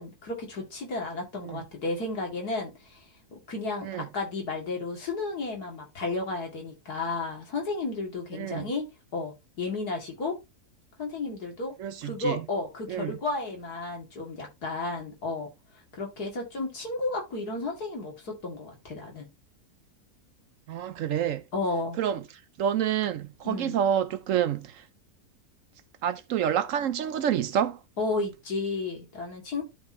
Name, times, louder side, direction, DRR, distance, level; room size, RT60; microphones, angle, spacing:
voice 1, 0.0-3.1 3.3-8.9 9.1-10.4 11.0-11.8 12.0-15.5 15.9-19.3 21.5-22.0 23.4-23.8 28.0-29.6, left 3 dB, 85° left, 2.9 m, -33 dB
voice 2, 11.8-12.4 12.9-13.1 20.7-21.4 22.0-22.2 22.6-24.8 26.0-27.8, right 9 dB, 70° right, 0.9 m, -28 dB
12.5 x 4.4 x 2.8 m
omnidirectional pair, 1.6 m